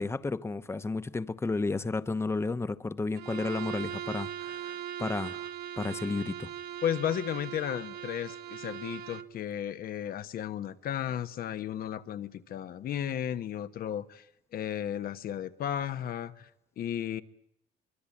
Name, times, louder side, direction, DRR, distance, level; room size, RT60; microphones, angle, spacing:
voice 1, 0.0-5.5 5.8-6.5, left 3 dB, 15° left, 0.9 m, -32 dB
Bowed string instrument, 3.2-9.3, right 10 dB, 75° right, 1.2 m, -40 dB
voice 2, 6.8-14.3 14.5-16.5 16.8-17.2, left 10 dB, 60° left, 1.3 m, -34 dB
24.5 x 23.0 x 8.6 m
cardioid pair, 110°, 17 cm